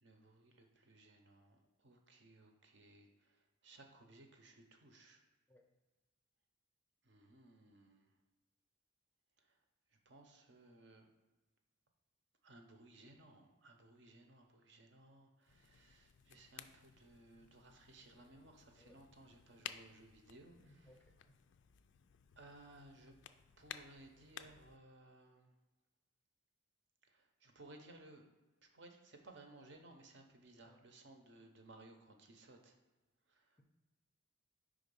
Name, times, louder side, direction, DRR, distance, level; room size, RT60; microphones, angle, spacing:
voice 1, 0.0-5.2 7.0-8.1 9.4-9.6 10.1-11.1 12.4-20.6 22.4-23.2 23.6-25.5 27.1-28.2 28.6-32.7 33.3-33.6, right 2 dB, 60° right, 4 dB, 0.7 m, -60 dB
sound 1, 15.4-24.8, left 10 dB, 60° left, 0.3 m, -56 dB
voice 2, 20.6-21.3 30.6-30.8, equal, 10° left, 2 dB, 0.5 m, -65 dB
4.9 x 3.8 x 5.3 m, 1.2 s
head